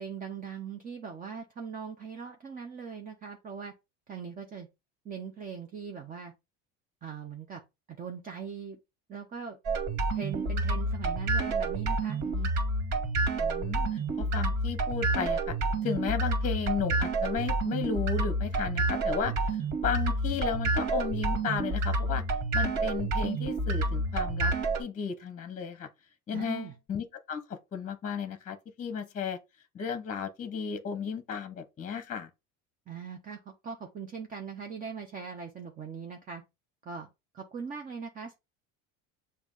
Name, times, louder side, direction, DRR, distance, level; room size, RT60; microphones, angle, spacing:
voice 1, 0.0-3.7 4.1-4.7 5.0-6.3 7.0-7.6 7.9-8.8 9.1-9.6 10.1-12.5 26.3-26.7 32.9-36.4 36.8-37.1 37.3-38.4, right 6 dB, 25° right, 1.0 m, -40 dB
sound 1, 9.7-24.8, right 2 dB, 55° right, 2.3 m, -29 dB
voice 2, 13.4-15.5 15.8-19.3 19.8-22.2 22.5-24.5 24.8-25.9 26.3-29.4 29.7-32.3, left 6 dB, 25° left, 1.0 m, -34 dB
7.1 x 2.8 x 5.5 m
cardioid pair, 135°, 32 cm